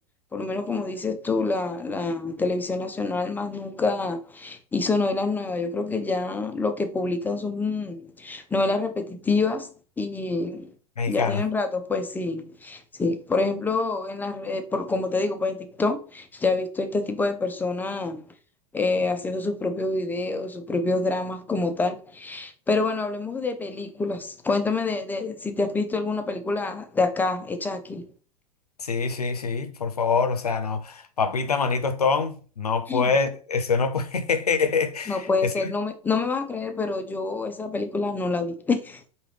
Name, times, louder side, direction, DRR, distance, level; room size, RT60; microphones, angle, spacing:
voice 1, 0.3-9.7 10.0-10.7 11.1-18.2 18.7-28.1 32.9-33.1 35.1-39.0, left 3 dB, 10° left, 0.5 m, -27 dB
voice 2, 11.0-11.4 28.8-35.7, left 5 dB, 80° left, 0.6 m, -25 dB
4.8 x 2.9 x 3.2 m
figure-of-eight pair, 90°, 19 cm